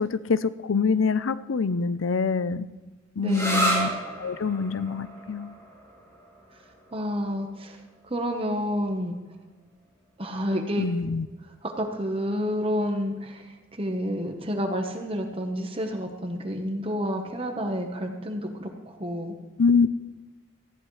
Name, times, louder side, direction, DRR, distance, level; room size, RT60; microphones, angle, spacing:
voice 1, 0.0-2.7 3.2-3.9 4.2-5.5 10.8-11.3 19.6-19.9, left 5 dB, 85° left, 15 dB, 0.6 m, -25 dB
voice 2, 3.2-3.7 6.9-7.8 8.1-9.1 10.2-10.9 11.6-13.4 13.7-19.3, equal, 30° right, 3 dB, 1.1 m, -29 dB
sound 1, 3.3-10.7, right 1 dB, 15° left, 3.7 m, -33 dB
18.5 x 14.5 x 3.2 m, 1.2 s
head